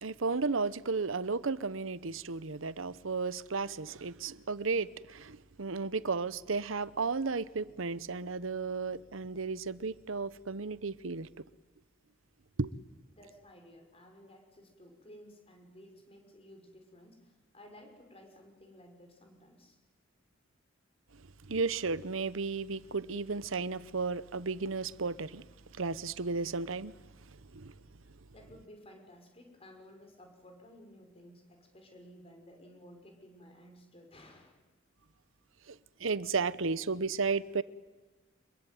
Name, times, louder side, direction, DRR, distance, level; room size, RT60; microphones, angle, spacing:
voice 1, 0.0-11.3 12.6-12.7 21.5-25.4 25.8-27.0 27.5-27.7 35.7-35.8 36.0-37.6, right 4 dB, 85° right, 0.9 m, -34 dB
voice 2, 13.1-19.8 28.3-34.6, equal, 30° left, 6.0 m, -55 dB
26.0 x 22.0 x 9.4 m
head